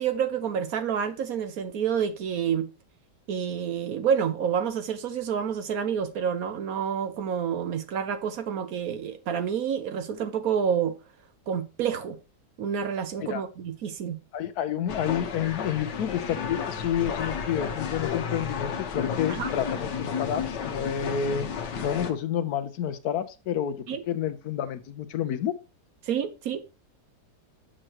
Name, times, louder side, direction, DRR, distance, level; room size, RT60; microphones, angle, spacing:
voice 1, 0.0-2.7 3.3-10.9 11.5-12.2 12.6-14.2 19.3-19.5 23.9-24.0 26.0-26.6, right 8 dB, 65° right, 1.1 m, -28 dB
voice 2, 14.3-21.5 21.8-23.8 24.1-25.5, left 9 dB, 70° left, 1.1 m, -29 dB
sound 1, 14.9-22.1, left 6 dB, 85° left, 1.6 m, -32 dB
7.7 x 6.2 x 2.9 m
omnidirectional pair, 1.8 m